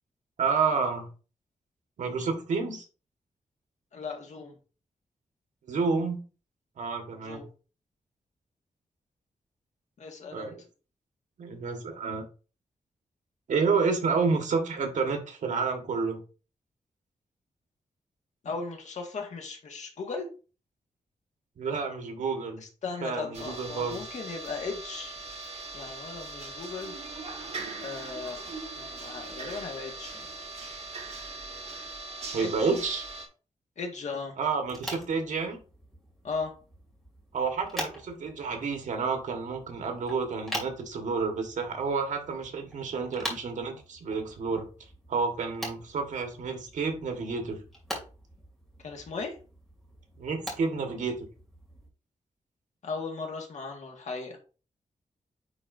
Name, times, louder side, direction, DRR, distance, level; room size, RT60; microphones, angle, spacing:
voice 1, 0.4-1.1 2.0-2.8 5.7-6.2 6.8-7.5 10.3-10.6 11.4-12.2 13.5-16.2 21.6-22.6 23.0-24.0 32.3-33.0 34.4-35.6 37.3-44.7 45.1-47.6 50.2-51.2, right 4 dB, 80° right, 4 dB, 1.5 m, -30 dB
voice 2, 3.9-4.5 7.2-7.4 10.0-10.5 18.4-20.3 22.6-25.1 25.7-26.9 27.8-28.4 28.7-30.3 32.4-32.7 33.8-34.3 36.2-36.5 48.8-49.4 52.8-54.4, left 4 dB, 70° left, 2 dB, 1.7 m, -37 dB
sound 1, 23.3-33.3, right 3 dB, 55° right, 1.7 m, -40 dB
sound 2, 34.6-51.9, equal, ahead, 2.5 m, -43 dB
9.6 x 4.1 x 2.7 m, 0.36 s
wide cardioid pair, 160°, 13 cm